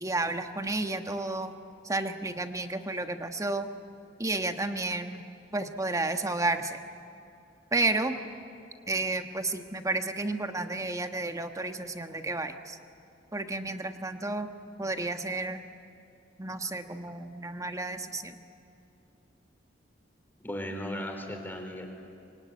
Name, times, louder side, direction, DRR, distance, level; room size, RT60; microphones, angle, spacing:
voice 1, 0.0-1.5 1.8-3.7 4.2-5.2 5.5-6.8 7.7-8.2 8.9-12.8 13.3-14.5 14.8-15.6 16.4-18.4, right 2 dB, 15° right, 7 dB, 1.3 m, -31 dB
voice 2, 20.4-21.9, equal, 10° left, 3 dB, 3.7 m, -36 dB
25.5 x 23.0 x 9.5 m, 2.6 s
head